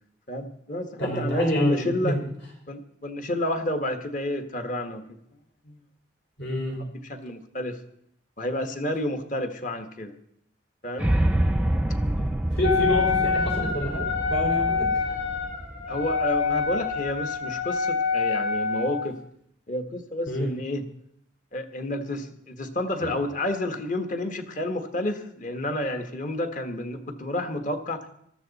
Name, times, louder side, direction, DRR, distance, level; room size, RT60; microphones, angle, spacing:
voice 1, 0.3-2.2 2.7-5.2 5.6-5.8 6.7-7.8 8.4-10.1 10.8-11.1 13.2-13.3 15.9-19.2 19.7-20.9 21.5-28.1, left 1 dB, 40° left, 7 dB, 1.4 m, -30 dB
voice 2, 1.0-2.2 6.4-6.8 12.1-12.3 12.5-15.1 20.3-20.5 23.0-23.1, equal, 65° left, -1 dB, 5.0 m, -28 dB
sound 1, 11.0-17.1, right 1 dB, 5° right, 0.6 m, -27 dB
Wind instrument woodwind instrument, 12.6-19.1, left 5 dB, 80° left, 4.0 m, -26 dB
19.5 x 14.0 x 4.1 m, 0.72 s
head